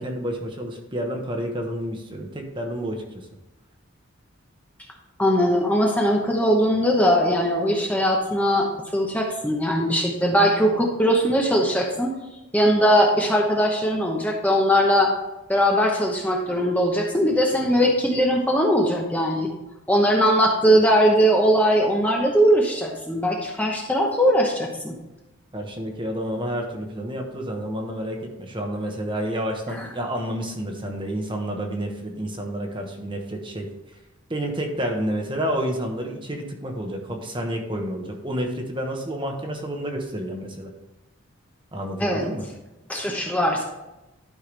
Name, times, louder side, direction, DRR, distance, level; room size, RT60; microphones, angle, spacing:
voice 1, 0.0-3.3 25.5-33.7 34.3-40.7 41.7-42.4, equal, 20° right, 2 dB, 1.1 m, -29 dB
voice 2, 5.2-12.1 12.5-15.1 15.5-19.5 19.9-24.9 42.0-42.3 42.9-43.6, equal, 5° left, 0 dB, 0.9 m, -20 dB
11.5 x 5.8 x 3.3 m, 1.0 s
head